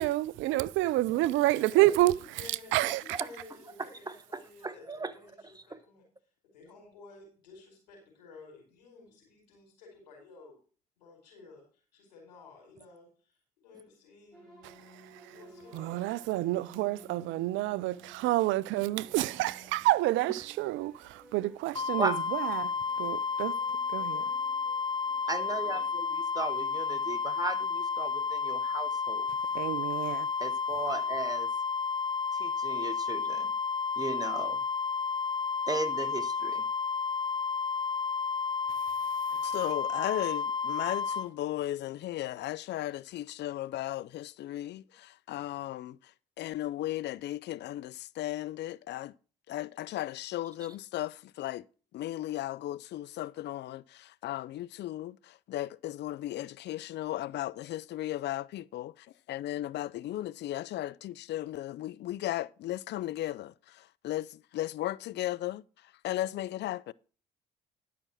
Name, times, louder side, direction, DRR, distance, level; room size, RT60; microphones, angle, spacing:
voice 1, 0.0-2.1 2.7-3.0 15.7-22.7 23.0-23.5 23.9-24.2 29.5-30.3, right 17 dB, 65° right, 0.5 m, -28 dB
voice 2, 1.0-6.0 6.4-10.5 11.0-14.5 15.3-16.3 19.2-19.3 19.9-20.0 25.4-25.9, left 4 dB, 90° left, 4.8 m, -53 dB
voice 3, 4.6-5.1 22.0-22.2 25.3-29.3 30.4-31.5 32.3-33.5 34.0-34.6 35.7-36.6, right 3 dB, 20° right, 1.2 m, -36 dB
sound 1, 14.3-25.9, right 1 dB, 5° left, 7.2 m, -56 dB
sound 2, 21.7-41.3, left 5 dB, 25° left, 1.3 m, -31 dB
voice 4, 39.4-46.0 46.4-49.1 49.5-51.7 51.9-65.6 66.0-66.9, left 14 dB, 55° left, 0.5 m, -36 dB
11.5 x 6.0 x 6.1 m
hypercardioid pair, 50°, 21 cm